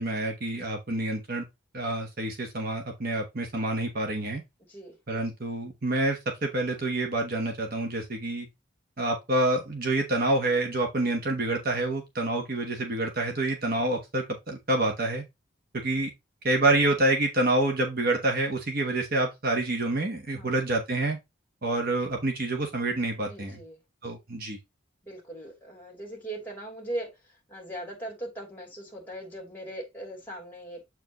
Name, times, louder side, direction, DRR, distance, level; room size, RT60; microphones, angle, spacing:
voice 1, 0.0-1.5 1.7-4.4 5.1-8.5 9.0-15.2 15.7-16.1 16.4-21.2 21.6-23.6 24.0-24.6, right 2 dB, 45° right, 1.1 m, -27 dB
voice 2, 20.3-20.6 23.3-23.8 25.0-27.1 27.5-30.8, right 1 dB, 10° left, 2.9 m, -39 dB
7.6 x 4.7 x 3.0 m
head